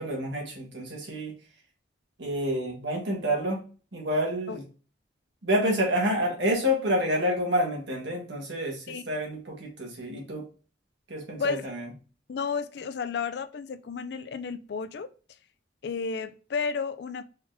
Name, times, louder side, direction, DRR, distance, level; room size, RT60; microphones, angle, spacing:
voice 1, 0.0-1.3 2.2-3.6 3.9-4.6 5.4-10.5 11.1-11.9, equal, 75° right, 1.6 m, -28 dB
voice 2, 11.4-11.7 12.3-15.1 15.8-17.2, left 5 dB, 60° left, 0.4 m, -32 dB
4.2 x 4.0 x 2.7 m
head